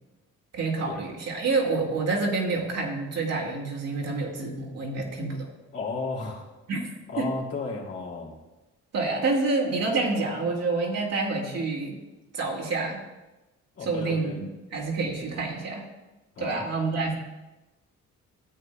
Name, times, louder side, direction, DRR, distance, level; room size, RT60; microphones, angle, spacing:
voice 1, 0.5-5.5 6.7-6.9 7.2-7.3 8.9-12.0 12.3-13.0 13.8-14.5 14.7-15.9 16.4-17.1, right 3 dB, 55° right, -1 dB, 2.0 m, -28 dB
voice 2, 5.7-6.4 7.1-8.3 13.8-14.4 16.4-16.6, left 3 dB, 55° left, -2 dB, 2.5 m, -33 dB
14.0 x 8.2 x 2.2 m, 1.1 s
cardioid pair, 90°, 30 cm